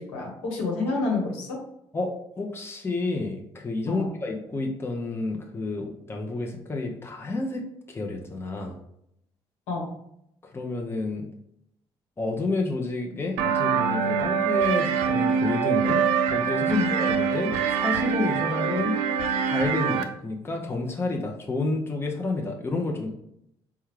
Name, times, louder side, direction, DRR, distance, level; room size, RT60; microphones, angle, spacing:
voice 1, 0.0-1.6 3.9-4.1 9.7-9.9 16.7-16.9, left 3 dB, 80° left, -2 dB, 1.2 m, -28 dB
voice 2, 1.9-8.8 10.4-11.3 12.2-16.0 16.3-19.0 19.5-23.1, left 2 dB, 20° left, 1 dB, 0.7 m, -30 dB
sound 1, 13.4-20.0, right 6 dB, 75° right, 0.4 m, -24 dB
4.5 x 2.3 x 3.1 m, 0.76 s
hypercardioid pair, 60°, 12 cm